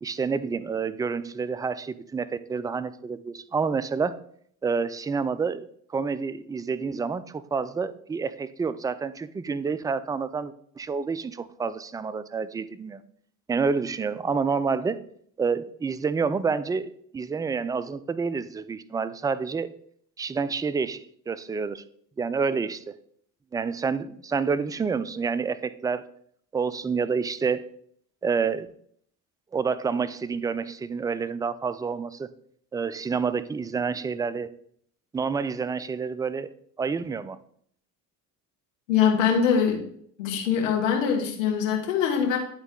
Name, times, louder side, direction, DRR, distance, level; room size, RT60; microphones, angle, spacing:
voice 1, 0.0-4.2 4.6-13.0 13.5-15.0 15.4-19.7 20.2-21.8 22.2-23.0 23.5-26.0 26.5-27.7 28.2-28.7 29.5-32.3 32.7-34.6 35.1-36.5 36.8-37.4, right 5 dB, 10° right, 15 dB, 0.3 m, -28 dB
voice 2, 38.9-39.8 40.2-42.4, left 7 dB, 90° left, 2 dB, 1.4 m, -23 dB
10.5 x 4.0 x 3.8 m, 0.64 s
hypercardioid pair, 75°, 38 cm